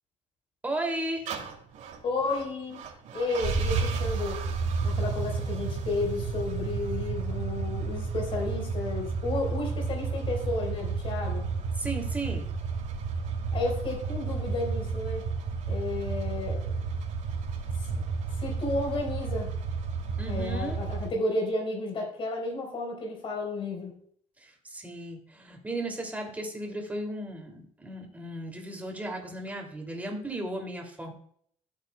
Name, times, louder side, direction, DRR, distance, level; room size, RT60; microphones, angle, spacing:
voice 1, 0.6-1.3 11.7-12.5 20.2-20.8 24.4-31.1, right 1 dB, 10° right, 2 dB, 2.7 m, -35 dB
sound 1, 1.3-21.1, right 4 dB, 80° right, 2.8 m, -32 dB
voice 2, 2.0-2.8 3.1-4.4 4.8-11.5 13.5-15.2 15.7-16.7 17.9-18.0 18.4-19.5 20.3-24.0, left 2 dB, 45° left, 0 dB, 4.3 m, -32 dB
16.0 x 8.2 x 2.3 m, 0.62 s
cardioid pair, 145°, 13 cm